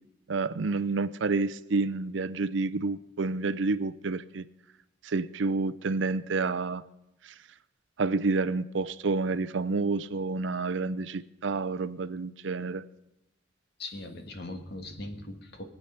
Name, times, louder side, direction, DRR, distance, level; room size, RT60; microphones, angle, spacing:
voice 1, 0.3-4.4 5.0-6.8 7.2-7.4 8.0-12.9, right 3 dB, 65° right, 14 dB, 0.6 m, -29 dB
voice 2, 13.8-15.6, left 2 dB, 55° left, 6 dB, 1.7 m, -40 dB
22.0 x 8.2 x 5.7 m, 0.90 s
head